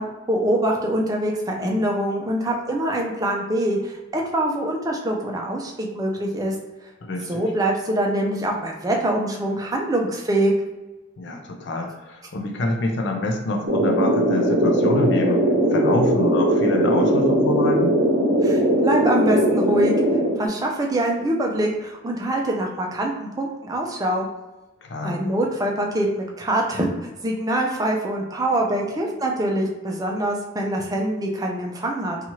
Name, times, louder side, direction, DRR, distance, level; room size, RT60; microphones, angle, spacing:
voice 1, 0.0-6.5 7.2-10.5 18.4-19.9 20.4-24.3 25.0-26.9 27.2-32.2, right 1 dB, 20° right, 0 dB, 0.4 m, -24 dB
voice 2, 7.0-7.4 11.2-15.4 15.7-17.9 24.8-25.2, left 2 dB, 60° left, 2 dB, 0.4 m, -26 dB
sound 1, 13.7-20.4, right 1 dB, 70° right, 0.6 m, -19 dB
2.8 x 2.3 x 2.9 m, 1.1 s
head